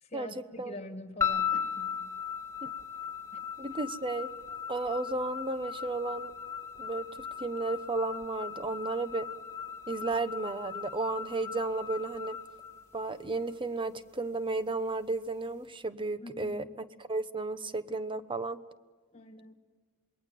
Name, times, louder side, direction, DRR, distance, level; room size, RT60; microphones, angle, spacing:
voice 1, 0.0-2.1 3.3-3.4 16.2-16.6 19.1-19.5, left 1 dB, 30° left, 7 dB, 2.1 m, -45 dB
sound 1, 1.2-13.5, left 7 dB, 15° left, 2.8 m, -37 dB
voice 2, 3.6-4.3 4.7-6.3 6.8-9.3 9.9-12.4 12.9-16.6 17.1-18.6, right 3 dB, 25° right, 12 dB, 0.9 m, -33 dB
27.0 x 21.0 x 7.7 m, 1.5 s
head